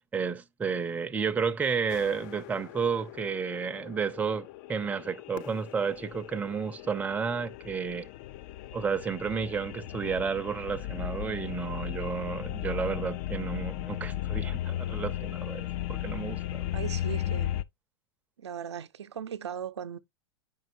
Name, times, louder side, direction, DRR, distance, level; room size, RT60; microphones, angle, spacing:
voice 1, 0.0-8.1 8.7-16.7, right 6 dB, 10° right, 0.5 m, -32 dB
sound 1, 1.9-17.6, left 12 dB, 45° left, 0.4 m, -36 dB
voice 2, 16.7-17.6 18.4-20.0, right 8 dB, 75° right, 0.6 m, -38 dB
9.1 x 5.3 x 2.6 m
figure-of-eight pair, 100°, 15 cm